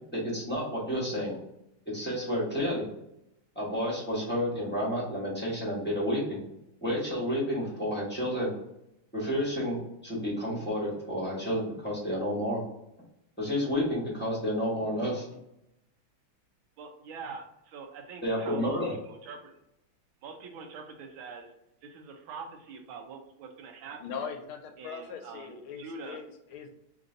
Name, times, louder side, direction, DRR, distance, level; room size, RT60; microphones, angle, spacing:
voice 1, 0.1-1.4 1.9-2.9 3.5-6.4 6.8-8.5 9.1-9.8 10.0-12.6 13.4-15.2 18.2-18.9, equal, 10° left, -6 dB, 0.7 m, -30 dB
voice 2, 16.8-18.8 19.0-19.6 20.2-21.5 21.8-24.0 24.8-26.2, right 5 dB, 80° right, 3 dB, 1.4 m, -44 dB
voice 3, 24.0-26.7, left 6 dB, 85° left, 5 dB, 1.5 m, -40 dB
3.8 x 2.6 x 3.7 m, 0.85 s
omnidirectional pair, 2.3 m